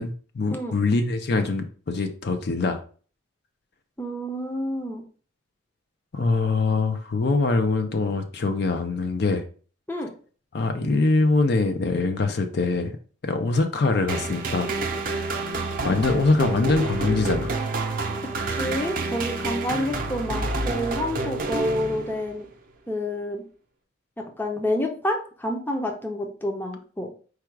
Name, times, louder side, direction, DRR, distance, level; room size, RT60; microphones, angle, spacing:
voice 1, 0.0-2.8 6.1-9.4 10.5-12.9 13.2-14.7 15.1-15.3 15.8-17.5, left 3 dB, 55° left, 7 dB, 0.5 m, -23 dB
voice 2, 4.0-5.0 9.9-10.1 18.5-22.5 22.9-23.4 24.2-27.1, left 1 dB, 10° left, 2 dB, 0.6 m, -29 dB
sound 1, 14.1-22.4, right 3 dB, 45° right, 0.6 m, -28 dB
4.7 x 2.3 x 4.5 m, 0.41 s
head